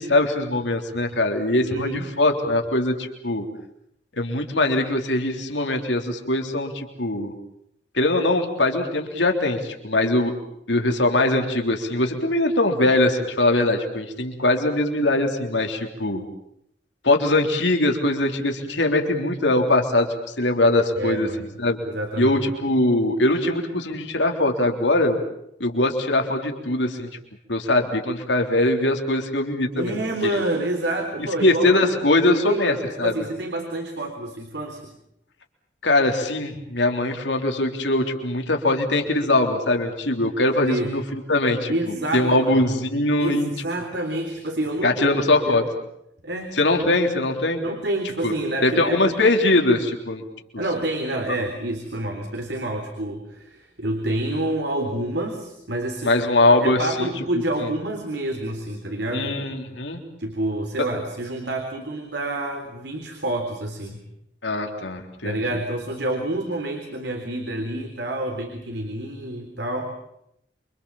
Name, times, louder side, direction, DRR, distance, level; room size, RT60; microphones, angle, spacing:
voice 1, 0.0-3.5 4.2-7.3 7.9-10.3 10.7-16.2 17.0-20.1 20.4-21.3 21.6-21.8 22.2-25.2 25.6-27.1 27.5-30.4 31.4-33.1 35.8-43.5 44.8-45.6 46.6-47.6 48.2-48.3 48.6-50.2 56.0-57.1 57.6-57.7 59.1-60.0 64.4-65.4, left 2 dB, 85° left, 3 dB, 3.6 m, -21 dB
voice 2, 1.6-2.1 21.0-21.5 21.8-22.4 29.8-32.0 32.5-34.9 40.7-41.0 41.7-42.6 43.2-45.1 45.4-45.6 46.2-46.6 47.6-49.2 50.6-56.3 56.6-59.3 60.2-64.0 65.2-69.9, right 1 dB, 70° right, 4 dB, 3.7 m, -28 dB
28.5 x 25.0 x 7.2 m, 0.77 s
head